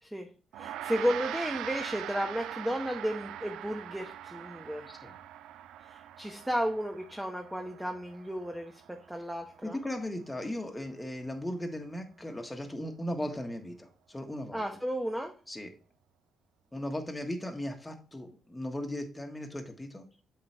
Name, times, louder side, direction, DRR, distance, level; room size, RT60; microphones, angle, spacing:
voice 1, 0.5-4.9 5.8-9.8 14.5-15.3, equal, 5° right, 3 dB, 1.0 m, -33 dB
Gong, 0.5-10.1, right 11 dB, 90° right, 0.3 m, -42 dB
voice 2, 9.6-14.6 15.5-15.7 16.7-20.0, left 1 dB, 15° left, 3 dB, 1.5 m, -37 dB
7.6 x 3.9 x 4.4 m, 0.38 s
cardioid pair, 75°, 0 cm